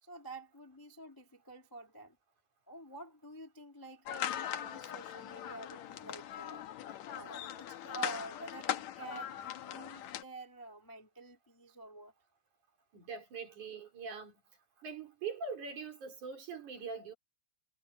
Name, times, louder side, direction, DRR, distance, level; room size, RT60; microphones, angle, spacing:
voice 1, 0.0-2.2 2.7-6.7 7.1-12.1, right 2 dB, 10° left, 1.3 m, -49 dB
sound 1, 4.1-10.2, left 11 dB, 65° left, 2.0 m, -40 dB
voice 2, 12.9-14.3 14.8-17.1, right 5 dB, 55° right, 5.5 m, -42 dB
omnidirectional pair, 4.1 m